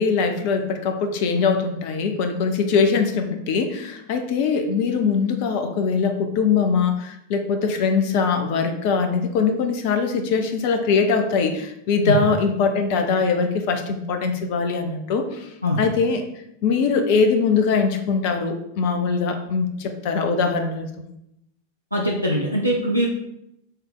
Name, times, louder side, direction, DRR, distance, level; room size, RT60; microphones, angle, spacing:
voice 1, 0.0-15.5 15.8-16.3 16.6-20.9, left 5 dB, 45° left, 6 dB, 0.9 m, -22 dB
voice 2, 21.9-23.1, equal, 90° right, -2 dB, 0.9 m, -21 dB
5.5 x 3.5 x 5.7 m, 0.79 s
figure-of-eight pair, 90°, 0 cm